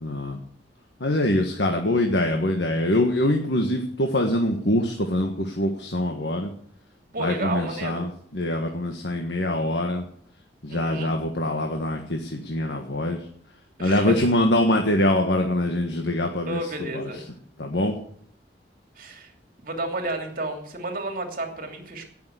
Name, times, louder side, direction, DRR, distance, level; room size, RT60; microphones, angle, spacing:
voice 1, 0.0-0.4 1.0-6.5 7.2-10.0 10.6-13.3 13.8-17.2 17.6-18.0, left 1 dB, 80° left, 3 dB, 1.6 m, -24 dB
voice 2, 7.1-8.1 10.7-11.2 13.8-14.2 16.5-17.2 19.0-19.3 19.6-22.0, right 2 dB, 55° right, 4 dB, 2.8 m, -31 dB
17.5 x 6.9 x 8.1 m, 0.62 s
head